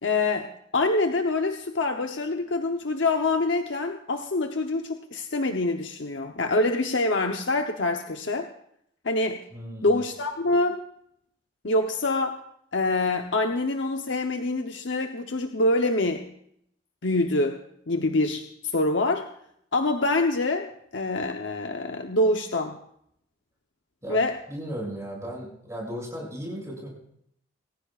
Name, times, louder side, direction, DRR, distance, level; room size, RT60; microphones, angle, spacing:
voice 1, 0.0-0.5 0.7-8.5 9.0-9.4 9.8-10.8 11.6-12.4 12.7-16.3 17.0-18.5 18.7-19.3 19.7-22.8 24.1-24.4, left 2 dB, 75° left, 4 dB, 0.9 m, -25 dB
voice 2, 9.5-10.0 24.0-24.2 24.5-26.9, equal, 15° right, -2 dB, 6.7 m, -35 dB
25.0 x 15.0 x 2.5 m, 0.71 s
head